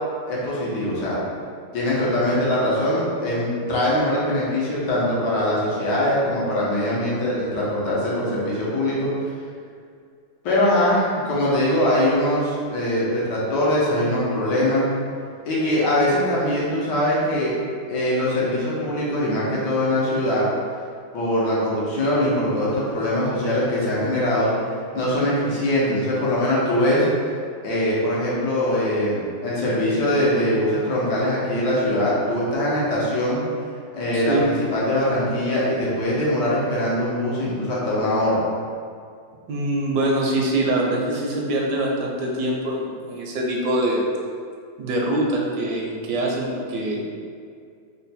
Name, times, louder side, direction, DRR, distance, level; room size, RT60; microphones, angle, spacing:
voice 1, 0.3-1.2 1.7-9.1 10.4-14.8 15.4-17.5 17.9-20.4 21.1-24.5 24.9-27.0 27.6-33.4 33.9-38.4, left 1 dB, 85° left, -7 dB, 1.6 m, -22 dB
voice 2, 34.1-34.5 39.5-44.0 44.8-47.0, right 1 dB, 85° right, -1 dB, 1.3 m, -24 dB
3.8 x 2.2 x 4.1 m, 2.2 s
omnidirectional pair, 1.8 m